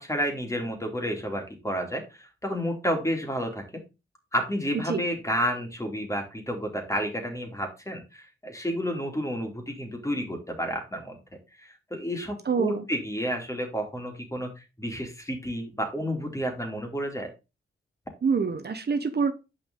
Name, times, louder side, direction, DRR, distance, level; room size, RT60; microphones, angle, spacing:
voice 1, 0.0-3.8 4.3-11.2 11.6-17.3, equal, 15° left, 3 dB, 2.8 m, -31 dB
voice 2, 12.5-12.8 18.2-19.3, right 5 dB, 50° right, 8 dB, 1.0 m, -26 dB
7.1 x 5.2 x 3.8 m, 0.27 s
cardioid pair, 50°, 21 cm